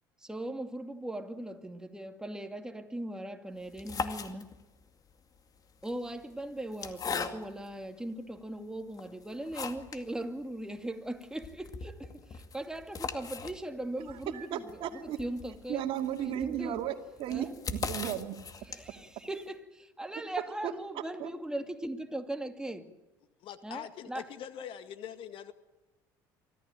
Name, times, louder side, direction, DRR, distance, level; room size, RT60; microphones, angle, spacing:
voice 1, 0.2-4.6 5.8-15.9 16.2-16.8 17.3-17.5 18.7-22.9 23.6-24.3, right 1 dB, 5° right, 2.4 m, -39 dB
sound 1, 3.6-4.8 5.7-7.7 8.4-8.5 8.9-10.1 10.4-10.5 10.8-10.9 11.2-19.1, left 5 dB, 35° left, 2.3 m, -40 dB
voice 2, 14.1-15.2 15.7-16.9 17.2-18.4 20.6-20.7 21.2-21.3, right 11 dB, 55° right, 2.5 m, -34 dB
voice 3, 23.4-25.5, left 10 dB, 55° left, 2.0 m, -43 dB
24.5 x 15.5 x 9.0 m
hypercardioid pair, 75°, 11 cm